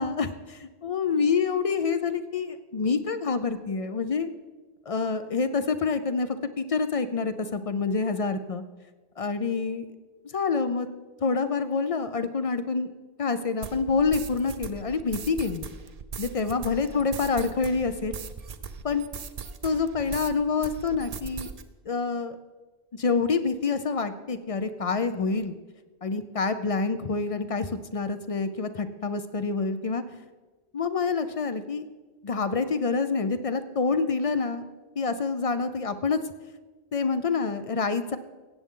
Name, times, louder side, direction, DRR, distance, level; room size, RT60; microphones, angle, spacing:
voice 1, 0.0-4.3 4.9-8.6 9.2-9.8 10.3-10.9 11.2-12.9 13.2-15.7 16.2-18.2 18.8-19.0 19.6-21.5 21.9-22.4 22.9-25.5 26.0-30.0 30.7-31.8 32.2-34.6 35.0-36.2 36.9-38.2, left 4 dB, 50° left, 11 dB, 0.4 m, -27 dB
sound 1, 13.6-20.4 20.6-21.6, right 6 dB, 45° right, 0.5 m, -39 dB
16.0 x 8.4 x 3.7 m, 1.2 s
omnidirectional pair, 1.1 m